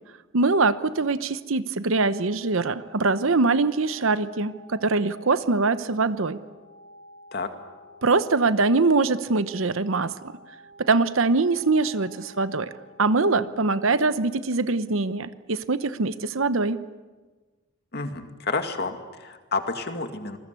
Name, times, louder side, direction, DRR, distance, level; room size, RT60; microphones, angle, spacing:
voice 1, 0.3-6.4 8.0-10.1 10.8-12.7 13.0-16.8, right 3 dB, 70° right, 13 dB, 0.9 m, -23 dB
sound 1, 2.5-13.5, equal, 45° right, 4.3 m, -51 dB
voice 2, 17.9-20.4, left 3 dB, 50° left, 6 dB, 2.2 m, -30 dB
27.0 x 21.0 x 8.3 m, 1.3 s
head